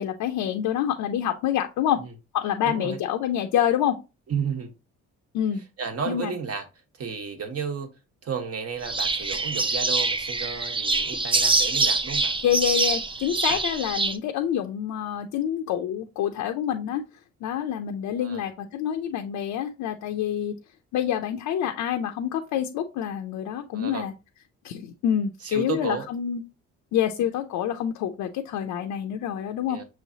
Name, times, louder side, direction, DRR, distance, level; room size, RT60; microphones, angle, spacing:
voice 1, 0.0-2.0 2.3-4.0 5.3-5.6 6.1-6.3 12.4-17.0 17.4-20.5 20.9-24.1 24.6-26.4 26.9-29.8, left 10 dB, 85° left, 0.6 m, -27 dB
voice 2, 2.6-3.0 4.3-4.7 5.8-6.6 7.0-7.9 8.2-12.4 13.5-13.6 18.2-18.4 23.7-24.0 25.4-26.1 29.7-29.8, right 6 dB, 55° right, 1.2 m, -32 dB
sound 1, 8.8-14.2, right 3 dB, 15° right, 0.5 m, -25 dB
6.2 x 3.1 x 2.7 m
cardioid pair, 90°, 30 cm